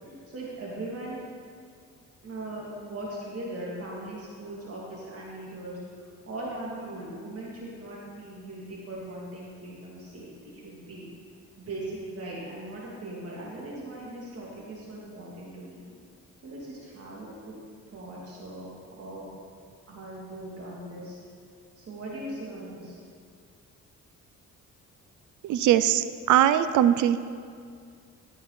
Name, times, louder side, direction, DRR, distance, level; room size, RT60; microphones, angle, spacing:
voice 1, 0.0-1.2 2.2-5.7 6.3-11.1 11.6-15.9 16.4-17.6 17.9-18.7 19.0-19.3 19.9-21.2 21.8-23.0, right 1 dB, 50° right, -5 dB, 3.0 m, -39 dB
voice 2, 25.4-27.2, right 11 dB, 75° right, 12 dB, 0.6 m, -21 dB
13.5 x 8.5 x 4.3 m, 2.2 s
cardioid pair, 90°, 30 cm